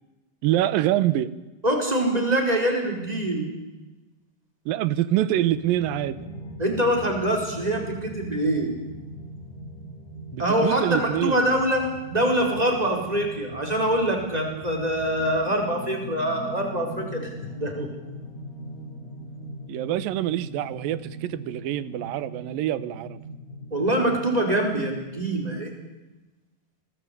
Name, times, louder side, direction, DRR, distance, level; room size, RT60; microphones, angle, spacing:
voice 1, 0.4-1.3 4.7-6.2 10.3-11.4 19.7-23.2, right 13 dB, 85° right, 16 dB, 2.7 m, -25 dB
voice 2, 1.6-3.5 6.6-8.7 10.4-17.3 17.6-17.9 23.7-25.7, right 1 dB, 10° right, 2 dB, 4.6 m, -24 dB
sound 1, 5.3-24.6, equal, 90° left, 4.4 m, -40 dB
25.5 x 19.0 x 8.3 m, 1.1 s
omnidirectional pair, 4.0 m